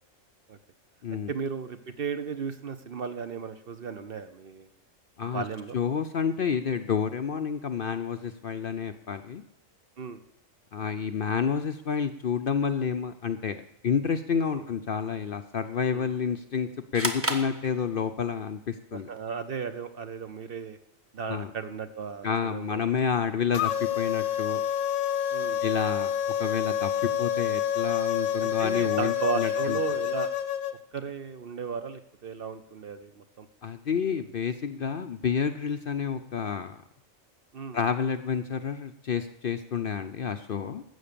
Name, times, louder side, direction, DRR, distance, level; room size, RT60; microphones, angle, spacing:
voice 1, 1.1-4.7 5.3-5.8 10.0-10.2 14.5-14.6 15.9-16.1 18.9-20.8 21.1-22.8 25.3-25.6 28.4-30.3 30.9-33.5 37.5-37.8, right 5 dB, 50° right, 9 dB, 0.9 m, -35 dB
voice 2, 5.7-9.4 10.7-19.1 21.3-21.5 22.2-24.6 25.6-29.8 33.6-36.8 37.7-40.8, left 7 dB, 55° left, 8 dB, 0.7 m, -29 dB
sound 1, 16.9-18.4, right 1 dB, 10° right, 1.1 m, -32 dB
sound 2, 23.5-30.7, left 10 dB, 85° left, 1.3 m, -28 dB
13.0 x 8.0 x 6.8 m, 0.80 s
omnidirectional pair, 1.4 m